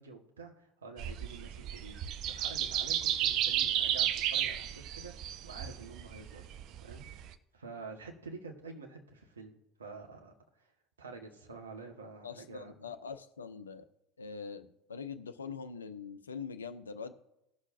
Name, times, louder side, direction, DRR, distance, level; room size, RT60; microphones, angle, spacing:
voice 1, 0.0-6.4 6.8-9.5 9.8-10.3 10.6-10.7 11.0-12.7, right 4 dB, 75° right, 2 dB, 1.3 m, -48 dB
sound 1, 1.0-7.3, right 10 dB, 50° right, 0.5 m, -33 dB
voice 2, 12.2-13.9 14.2-17.1, left 5 dB, 75° left, 10 dB, 0.6 m, -43 dB
19.0 x 6.4 x 2.6 m, 0.88 s
figure-of-eight pair, 70°, 0 cm